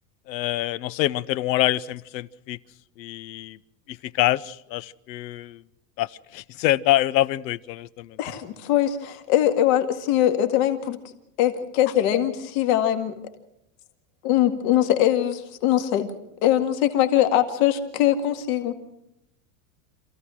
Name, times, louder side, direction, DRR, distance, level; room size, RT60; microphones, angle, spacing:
voice 1, 0.3-2.6 3.0-3.6 3.9-5.6 6.0-8.2, left 15 dB, 85° left, 20 dB, 0.8 m, -25 dB
voice 2, 8.2-11.0 11.4-13.1 14.2-16.1 16.4-18.7, left 12 dB, 55° left, 7 dB, 2.1 m, -22 dB
27.0 x 15.0 x 6.3 m, 0.83 s
supercardioid pair, 155°, 49 cm